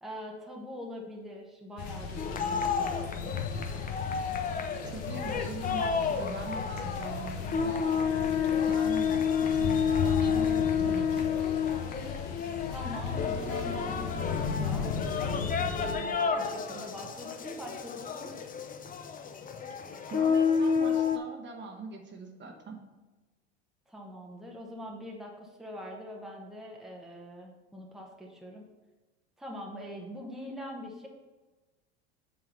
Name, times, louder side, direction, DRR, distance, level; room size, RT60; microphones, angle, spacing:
voice 1, 0.0-3.3 12.7-18.3 23.9-28.7 29.4-31.1, left 1 dB, ahead, -1 dB, 1.2 m, -43 dB
sound 1, 1.8-15.9, left 6 dB, 70° left, 1.1 m, -36 dB
sound 2, 2.2-21.2, left 6 dB, 25° left, 0.6 m, -30 dB
voice 2, 4.9-8.0 8.6-11.3 20.1-22.8, right 3 dB, 35° right, 2 dB, 1.3 m, -42 dB
7.5 x 3.8 x 5.4 m, 1.2 s
hypercardioid pair, 90°, 34 cm